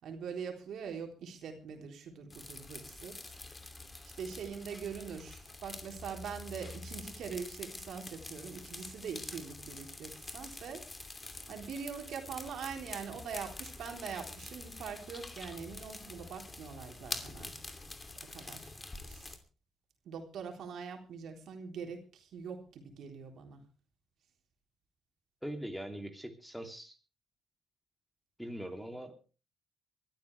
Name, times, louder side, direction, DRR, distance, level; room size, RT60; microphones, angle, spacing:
voice 1, 0.0-3.4 4.2-10.8 11.5-17.8 18.3-18.7 19.1-19.4 20.1-23.6, right 6 dB, 70° right, 3 dB, 3.8 m, -43 dB
sound 1, 2.3-19.4, left 2 dB, 25° left, 2.7 m, -46 dB
voice 2, 25.4-26.9 28.4-29.2, equal, ahead, 5 dB, 2.9 m, -41 dB
24.0 x 13.0 x 3.4 m, 0.34 s
cardioid pair, 90°, 0 cm